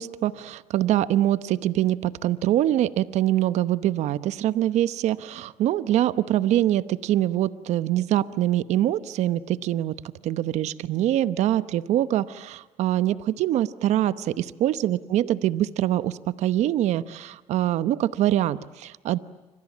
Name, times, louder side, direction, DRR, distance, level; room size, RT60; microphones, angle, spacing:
voice 1, 0.0-9.9 10.2-19.2, right 13 dB, 75° right, 14 dB, 0.9 m, -24 dB
29.0 x 25.5 x 7.4 m, 1.2 s
supercardioid pair, 75°, 12 cm